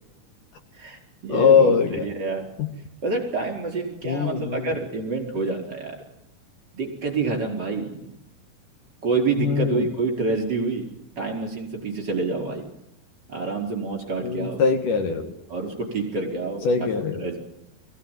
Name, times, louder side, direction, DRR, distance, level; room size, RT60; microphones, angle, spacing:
voice 1, 0.7-2.4 3.0-6.0 6.7-8.1 9.0-10.9 11.2-12.7 13.3-14.6 15.5-16.9 17.2-17.4, right 3 dB, 30° right, 2 dB, 5.2 m, -27 dB
voice 2, 1.3-2.1 2.6-2.7 4.0-4.7 9.4-9.9 14.2-15.3 16.6-17.2, left 6 dB, 65° left, 6 dB, 3.2 m, -21 dB
22.5 x 17.0 x 9.3 m, 0.83 s
omnidirectional pair, 4.2 m